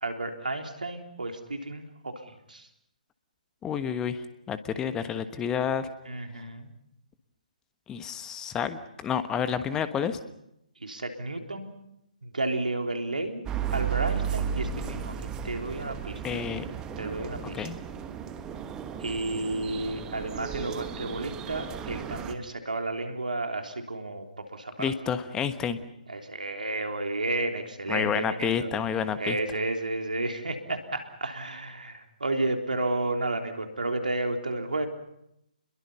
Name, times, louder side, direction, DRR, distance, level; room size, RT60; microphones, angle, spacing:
voice 1, 0.0-2.7 6.1-6.7 10.8-11.7 12.2-13.4 13.7-15.1 15.4-16.5 17.0-17.7 19.0-24.9 26.1-28.8 29.2-34.9, right 2 dB, 80° right, 4 dB, 3.6 m, -32 dB
voice 2, 3.6-5.9 7.9-10.2 16.2-16.6 17.5-17.8 24.8-25.8 27.9-29.4, left 7 dB, 15° left, 11 dB, 1.3 m, -29 dB
sound 1, 13.5-22.3, right 8 dB, 15° right, 1.3 m, -34 dB
28.5 x 22.0 x 5.6 m, 0.81 s
figure-of-eight pair, 140°, 4 cm